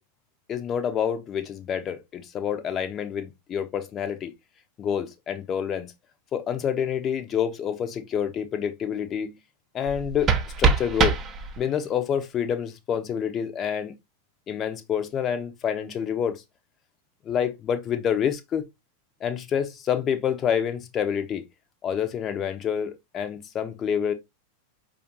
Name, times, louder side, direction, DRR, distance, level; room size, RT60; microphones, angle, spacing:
voice 1, 0.5-4.3 4.8-5.9 6.3-9.3 9.7-10.3 10.6-11.2 11.6-13.9 14.5-16.4 17.2-18.6 19.2-21.4 21.8-24.1, left 8 dB, 30° left, 0.6 m, -27 dB
sound 1, 9.8-11.9, right 5 dB, 25° right, 0.5 m, -24 dB
5.0 x 2.5 x 2.9 m
figure-of-eight pair, 90°, 0 cm